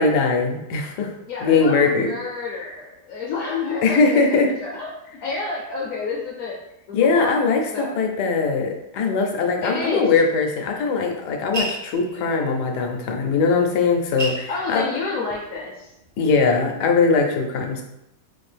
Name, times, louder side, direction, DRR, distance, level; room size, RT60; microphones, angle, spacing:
voice 1, 0.0-1.1 1.4-2.1 3.8-4.5 6.9-14.8 16.2-17.8, left 4 dB, 80° left, 3 dB, 1.3 m, -20 dB
voice 2, 1.3-6.6 6.9-7.4 7.7-8.0 9.6-10.1 14.5-15.9, left 4 dB, 65° left, -2 dB, 0.9 m, -29 dB
sound 1, 11.5-12.5 13.6-13.7 13.9-15.6 16.0-16.7, right 2 dB, 45° right, 0.4 m, -31 dB
4.3 x 2.5 x 3.3 m, 0.86 s
omnidirectional pair, 1.7 m